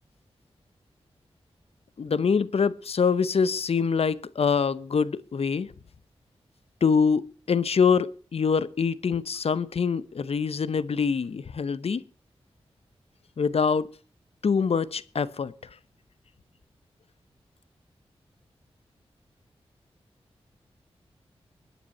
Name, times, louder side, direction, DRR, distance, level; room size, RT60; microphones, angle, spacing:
voice 1, 2.0-5.7 6.8-12.0 13.4-13.9 14.4-15.5, left 5 dB, 65° left, 0.8 m, -24 dB
21.5 x 9.2 x 4.2 m
cardioid pair, 60°, 11 cm